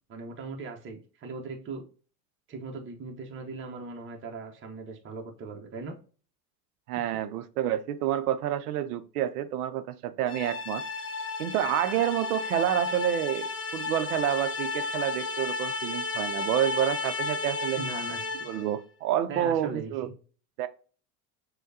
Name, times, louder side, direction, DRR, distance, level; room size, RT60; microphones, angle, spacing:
voice 1, 0.1-1.8 2.5-6.0 17.8-18.4 19.3-20.1, right 3 dB, 25° right, 0.9 m, -39 dB
voice 2, 6.9-10.8 11.4-17.8 18.4-20.1 20.6-20.7, right 11 dB, 75° right, 0.6 m, -29 dB
sound 1, 10.3-18.7, left 4 dB, 25° left, 0.8 m, -33 dB
6.3 x 2.3 x 2.7 m
hypercardioid pair, 85°, 46 cm